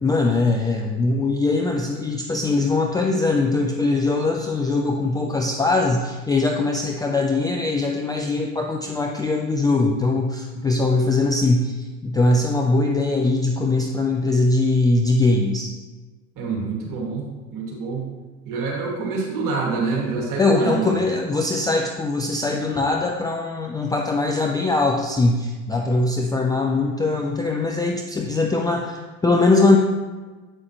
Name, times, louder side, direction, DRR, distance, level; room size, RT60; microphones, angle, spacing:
voice 1, 0.0-11.8 12.0-15.7 20.4-29.8, left 3 dB, 10° left, 0 dB, 0.4 m, -21 dB
voice 2, 16.4-17.2 17.5-18.1 18.4-20.9, right 4 dB, 45° right, -1 dB, 2.2 m, -26 dB
7.8 x 5.5 x 3.0 m, 1.3 s
figure-of-eight pair, 75°, 43 cm